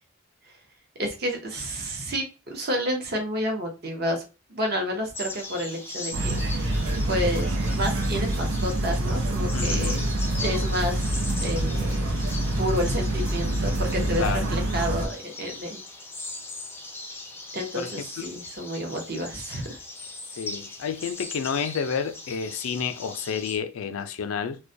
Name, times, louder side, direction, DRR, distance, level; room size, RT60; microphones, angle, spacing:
voice 1, 1.0-4.2 4.5-10.0 10.4-11.0 11.4-12.0 12.6-15.8 17.5-19.8, equal, 50° right, 0.7 m, -30 dB
sound 1, 5.1-23.6, left 2 dB, 10° left, 0.4 m, -39 dB
sound 2, 6.1-15.1, right 1 dB, 85° right, 0.5 m, -26 dB
sound 3, 6.6-14.4, equal, 70° right, 1.1 m, -35 dB
voice 2, 9.5-10.1 14.2-14.5 17.7-17.9 20.4-24.6, left 6 dB, 90° left, 0.4 m, -30 dB
2.2 x 2.1 x 2.6 m
head